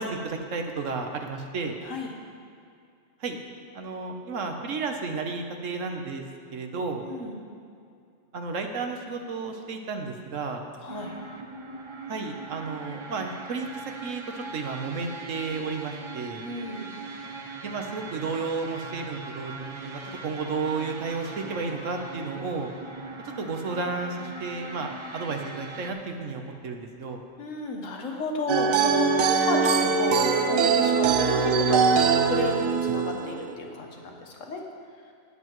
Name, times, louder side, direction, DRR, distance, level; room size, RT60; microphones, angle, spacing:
voice 1, 0.0-1.8 3.2-3.4 3.7-6.2 6.5-7.0 8.3-10.6 12.1-13.7 14.0-16.4 17.6-22.7 23.4-27.2 29.8-29.9, right 4 dB, 70° right, 4 dB, 1.3 m, -32 dB
voice 2, 1.8-2.1 7.0-7.4 10.8-11.2 16.4-17.0 27.4-34.6, left 3 dB, 70° left, 1 dB, 1.6 m, -32 dB
sound 1, 10.9-25.9, right 3 dB, 35° right, 0.5 m, -40 dB
sound 2, 28.5-33.5, right 5 dB, 85° right, 1.1 m, -22 dB
19.0 x 7.8 x 3.1 m, 2.4 s
omnidirectional pair, 1.4 m